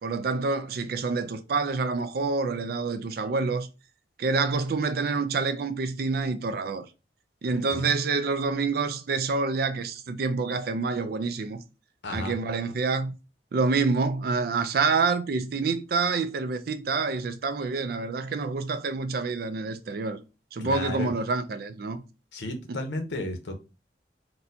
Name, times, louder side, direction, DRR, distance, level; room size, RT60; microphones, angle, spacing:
voice 1, 0.0-3.7 4.2-6.9 7.4-11.6 12.1-13.1 13.5-20.2 20.5-22.0 22.7-22.8, right 4 dB, 55° right, 0.4 m, -27 dB
voice 2, 12.0-12.3 20.6-21.1 22.3-23.6, left 2 dB, 85° left, 0.8 m, -33 dB
4.0 x 2.2 x 2.7 m
head